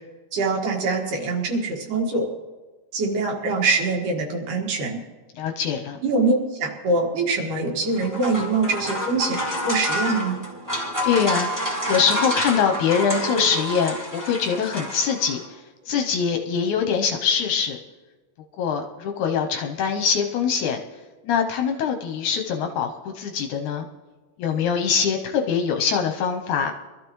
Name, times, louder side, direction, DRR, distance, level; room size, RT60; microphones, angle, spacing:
voice 1, 0.3-2.3 2.9-5.0 6.0-10.4, right 3 dB, 70° right, 0 dB, 3.3 m, -24 dB
voice 2, 5.3-6.0 11.0-11.5 11.9-15.4 15.9-17.8 18.6-20.8 21.3-23.9 24.4-26.7, left 6 dB, 75° left, 4 dB, 2.0 m, -23 dB
sound 1, 7.8-15.4, equal, 5° right, 2.0 m, -28 dB
23.5 x 13.5 x 3.1 m, 1.3 s
omnidirectional pair, 4.0 m